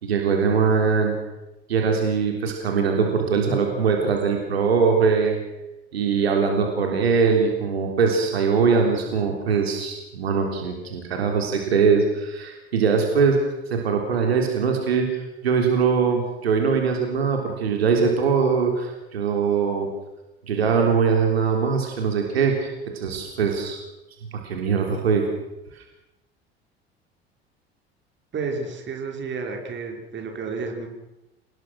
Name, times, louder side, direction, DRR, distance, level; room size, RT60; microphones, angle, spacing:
voice 1, 0.0-1.2 1.7-5.4 5.9-13.4 13.7-19.9 20.5-23.8 24.4-25.3 25.7-25.8, right 5 dB, 75° right, 2 dB, 3.6 m, -22 dB
voice 2, 28.3-30.9, right 4 dB, 35° right, 3 dB, 5.6 m, -31 dB
28.0 x 19.5 x 6.3 m, 0.95 s
figure-of-eight pair, 65°, 32 cm